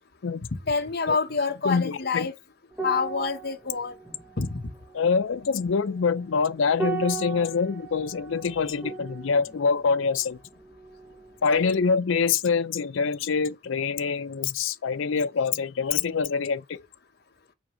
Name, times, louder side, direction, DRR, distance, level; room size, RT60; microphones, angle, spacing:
voice 1, 0.7-2.3 2.8-4.0 4.4-4.7 11.5-11.8, left 4 dB, 50° left, 1.0 m, -27 dB
voice 2, 1.7-2.3 4.9-10.4 11.4-16.8, left 5 dB, 70° left, 0.5 m, -25 dB
sound 1, 2.7-11.5 11.7-12.0, right 5 dB, 5° right, 1.0 m, -38 dB
6.3 x 4.3 x 4.9 m
head